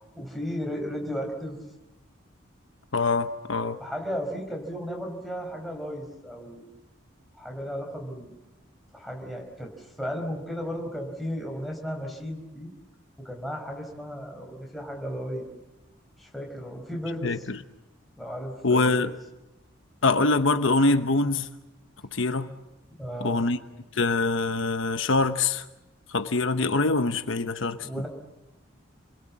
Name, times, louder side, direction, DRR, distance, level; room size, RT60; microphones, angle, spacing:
voice 1, 0.1-1.6 3.8-6.6 7.3-8.4 8.9-12.7 13.2-15.5 16.2-17.3 18.2-19.0 23.0-23.4 27.8-28.1, equal, ahead, 4.9 m, -34 dB
voice 2, 2.9-3.8 17.2-17.6 18.6-19.1 20.0-21.5 22.1-22.5 23.2-23.6 23.9-25.7 26.1-27.9, left 3 dB, 75° left, 1.0 m, -24 dB
29.5 x 22.0 x 7.5 m
head